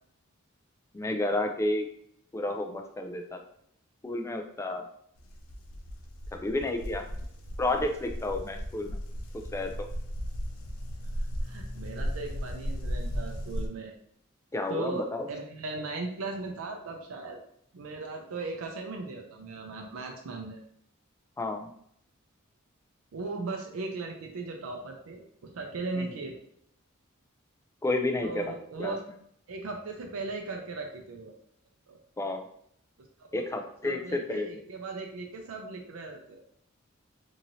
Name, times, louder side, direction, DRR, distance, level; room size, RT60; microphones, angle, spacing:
voice 1, 0.9-1.9 2.3-3.4 4.0-4.9 6.3-7.0 7.6-9.0 9.5-9.9 14.5-15.3 21.4-21.7 26.0-26.1 27.8-28.5 28.8-29.0 32.2-32.4 33.3-34.5, left 2 dB, 15° left, 4 dB, 0.3 m, -31 dB
sound 1, 5.2-13.7, equal, 85° left, 0.5 m, -36 dB
voice 2, 11.4-13.9 14.7-17.4 17.7-20.6 23.1-25.2 25.5-26.3 28.2-29.0 29.5-31.4 31.9-32.0 33.4-33.5 33.8-36.4, right 3 dB, 80° right, 1 dB, 0.5 m, -37 dB
3.0 x 2.7 x 2.6 m, 0.68 s
head